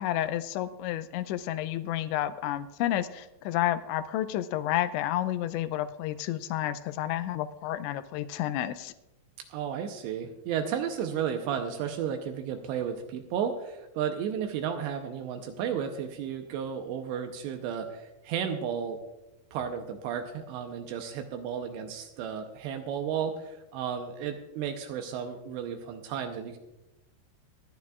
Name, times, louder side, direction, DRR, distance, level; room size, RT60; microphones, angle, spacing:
voice 1, 0.0-8.9, left 12 dB, 85° left, 11 dB, 2.6 m, -30 dB
voice 2, 9.5-19.0 19.5-26.6, right 8 dB, 80° right, 5 dB, 2.6 m, -33 dB
27.0 x 9.4 x 2.4 m, 0.97 s
omnidirectional pair, 5.7 m